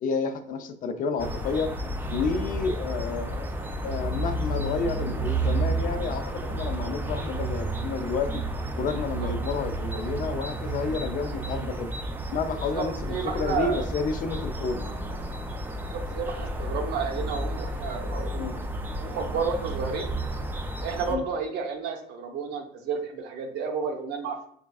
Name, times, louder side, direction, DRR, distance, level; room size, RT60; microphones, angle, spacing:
voice 1, 0.0-1.7 2.1-3.5 3.8-8.5 8.7-11.9 12.3-15.0 17.2-17.3 18.4-18.5 21.1-21.2, left 4 dB, 55° left, 8 dB, 0.4 m, -30 dB
sound 1, 1.2-21.1, right 1 dB, 10° right, 0.3 m, -31 dB
voice 2, 12.7-13.9 15.9-18.5 19.0-20.1 20.8-24.5, right 5 dB, 75° right, 4 dB, 0.6 m, -31 dB
5.0 x 2.4 x 2.3 m, 0.66 s
cardioid pair, 110°, 17 cm